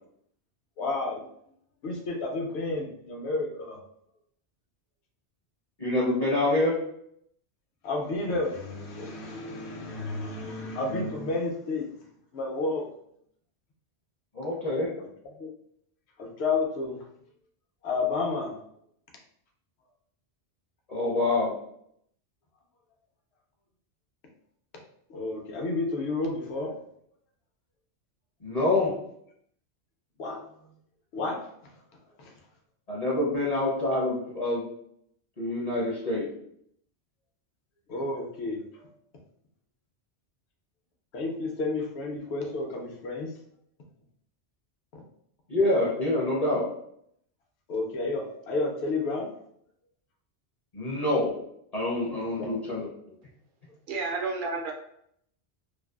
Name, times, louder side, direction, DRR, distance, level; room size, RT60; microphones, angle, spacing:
voice 1, 0.8-1.3 1.8-3.8 7.8-11.9 12.3-12.8 15.4-15.5 16.2-17.0 17.8-18.6 25.1-26.8 30.2-30.4 31.1-31.4 32.2-32.3 37.9-38.9 41.1-43.3 44.9-45.0 47.7-49.3 52.4-52.5, left 3 dB, 75° left, 1 dB, 0.9 m, -31 dB
voice 2, 5.8-6.8 14.3-14.9 20.9-21.6 28.4-29.0 32.9-34.6 35.4-36.3 45.5-46.7 50.7-51.4 51.7-53.1, left 2 dB, 45° left, -5 dB, 0.6 m, -26 dB
voice 3, 53.9-54.7, right 3 dB, 60° right, 1 dB, 0.6 m, -30 dB
2.5 x 2.3 x 2.2 m, 0.70 s
omnidirectional pair, 1.1 m